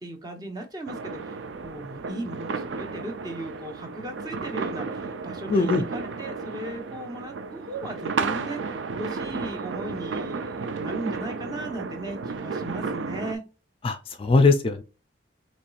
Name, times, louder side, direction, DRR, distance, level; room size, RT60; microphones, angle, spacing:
voice 1, 0.0-13.4, right 1 dB, 20° right, 0.8 m, -37 dB
sound 1, 0.9-13.3, right 4 dB, 85° right, 0.4 m, -33 dB
voice 2, 5.5-5.8 13.8-14.8, left 3 dB, 30° left, 0.3 m, -20 dB
4.4 x 3.0 x 2.3 m
head